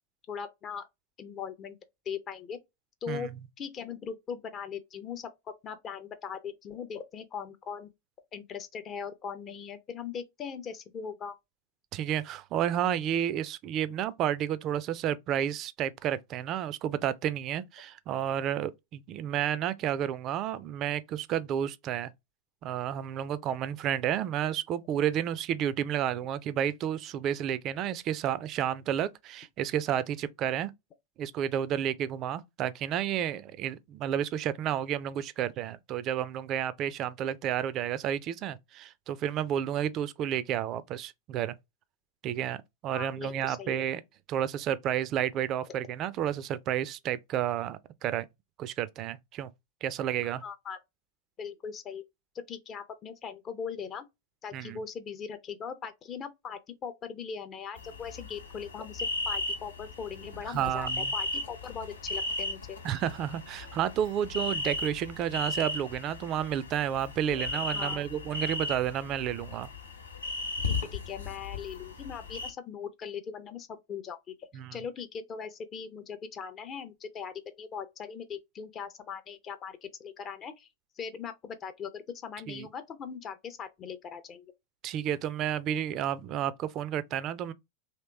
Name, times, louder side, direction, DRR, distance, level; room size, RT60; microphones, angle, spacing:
voice 1, 0.3-0.9 1.2-1.8 2.1-2.6 3.0-3.3 3.6-7.9 8.3-11.3 42.9-43.9 45.6-45.8 50.4-50.8 51.4-52.0 52.5-54.0 54.4-62.8 67.3-67.4 67.7-68.1 70.6-80.7 81.0-84.5, left 7 dB, 30° left, 0.5 m, -40 dB
voice 2, 11.9-22.1 22.6-30.7 31.2-41.6 42.2-44.0 44.3-48.3 48.6-49.5 49.8-50.4 54.5-54.8 60.5-61.1 62.8-69.7 74.5-74.8 82.5-82.7 84.8-87.5, right 10 dB, 35° right, 0.4 m, -31 dB
sound 1, 57.8-72.5, left 2 dB, 80° left, 1.0 m, -36 dB
3.0 x 2.9 x 3.0 m
figure-of-eight pair, 90°, 0 cm